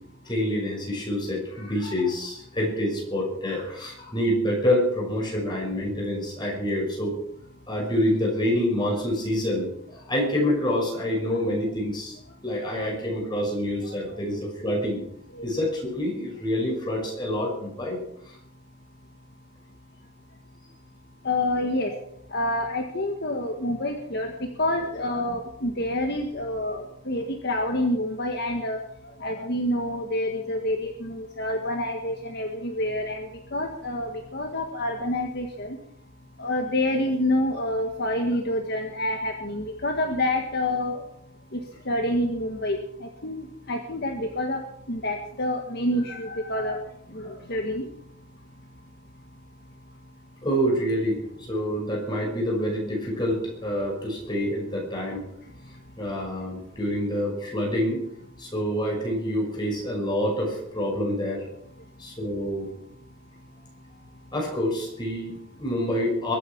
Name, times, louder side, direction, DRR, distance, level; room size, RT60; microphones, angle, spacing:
voice 1, 0.2-7.2 7.7-12.2 12.4-15.0 15.4-18.0 18.2-18.4 46.0-46.8 47.2-47.3 50.4-55.3 56.0-58.0 58.4-61.5 62.0-62.7 64.3-66.3, equal, 20° left, -1 dB, 6.0 m, -27 dB
voice 2, 21.3-21.9 22.3-24.3 24.6-28.8 29.2-35.8 36.4-41.0 41.9-44.6 44.9-46.8 47.1-47.9, left 1 dB, 50° left, 3 dB, 1.7 m, -27 dB
22.5 x 8.8 x 6.1 m, 0.75 s
head